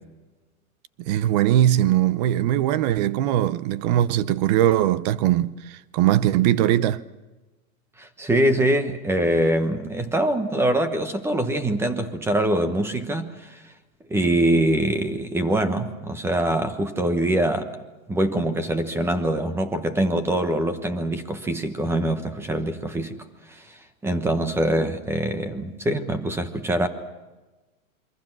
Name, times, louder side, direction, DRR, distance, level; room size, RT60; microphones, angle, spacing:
voice 1, 1.0-7.0, right 12 dB, 30° right, 0.7 m, -20 dB
voice 2, 8.0-13.6 14.1-17.7 18.1-26.9, right 1 dB, 5° right, 1.2 m, -24 dB
27.5 x 24.0 x 6.1 m
hypercardioid pair, 150°, 42 cm